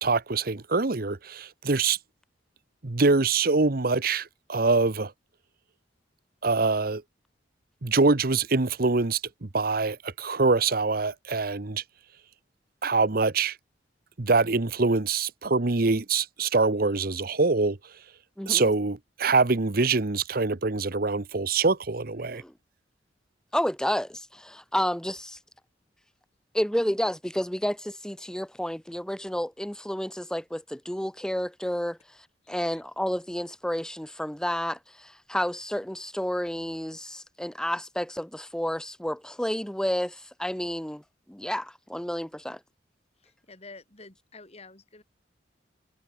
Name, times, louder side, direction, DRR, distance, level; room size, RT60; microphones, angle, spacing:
voice 1, 0.0-2.0 2.8-5.1 6.4-7.0 7.8-11.8 12.8-13.6 14.2-17.8 18.5-22.4, right 3 dB, 50° right, 1.0 m, -24 dB
voice 2, 18.4-18.7 22.3-22.5 23.5-25.4 26.5-32.0 32.5-41.0 41.3-42.6, equal, 5° left, 0.8 m, -30 dB
voice 3, 43.2-45.0, left 3 dB, 35° left, 7.2 m, -49 dB
head